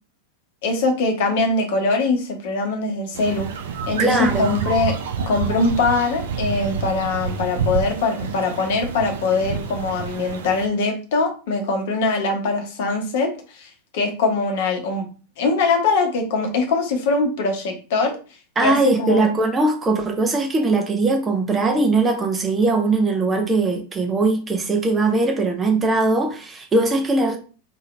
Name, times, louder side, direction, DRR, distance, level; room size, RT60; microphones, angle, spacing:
voice 1, 0.6-3.5 3.9-5.0 5.3-13.3 13.6-13.7 13.9-15.1 15.4-18.2 18.6-19.3, left 3 dB, 55° left, 0.9 m, -22 dB
sound 1, 3.1-10.7, right 6 dB, 60° right, 0.4 m, -28 dB
voice 2, 4.0-4.6 18.6-27.4, right 3 dB, 15° right, 0.6 m, -20 dB
2.8 x 2.6 x 3.2 m
figure-of-eight pair, 90°, 0 cm